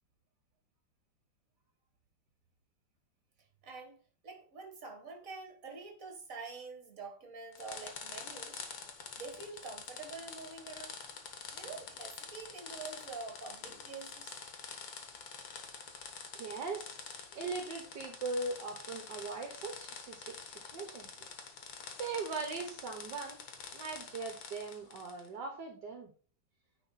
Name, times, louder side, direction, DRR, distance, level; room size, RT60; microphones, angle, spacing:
voice 1, 3.6-4.0 4.2-11.0 11.5-14.4, right 4 dB, 45° right, 4 dB, 2.1 m, -47 dB
sound 1, 7.5-25.3, left 6 dB, 80° left, 1.9 m, -47 dB
voice 2, 16.4-17.0 17.4-21.2 22.0-23.4 23.7-26.1, right 3 dB, 65° right, 3 dB, 1.7 m, -40 dB
9.7 x 4.3 x 4.1 m, 0.40 s
omnidirectional pair, 2.0 m